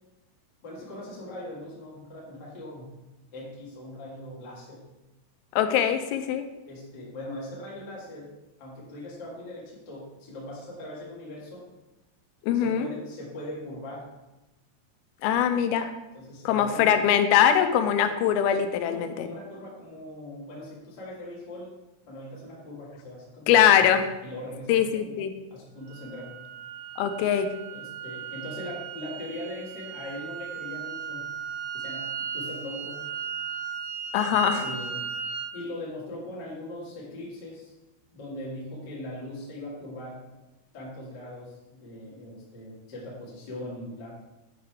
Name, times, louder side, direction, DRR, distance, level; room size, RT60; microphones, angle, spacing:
voice 1, 0.6-2.9 3.3-4.8 6.6-8.3 8.6-11.6 12.5-14.1 16.1-16.9 18.8-21.7 22.1-23.8 24.2-25.1 25.5-26.3 27.7-31.3 31.7-33.0 34.3-35.0 35.5-37.7 38.1-40.2 40.7-44.1, left 1 dB, 60° left, -6 dB, 1.1 m, -40 dB
voice 2, 5.5-6.5 12.4-12.9 15.2-15.9 16.4-19.3 23.5-24.1 24.7-25.3 27.0-27.6 34.1-34.7, left 9 dB, 85° left, 8 dB, 3.2 m, -22 dB
sound 1, 25.9-35.6, right 8 dB, 85° right, 3.2 m, -36 dB
8.4 x 3.6 x 4.6 m, 1.0 s
omnidirectional pair, 5.8 m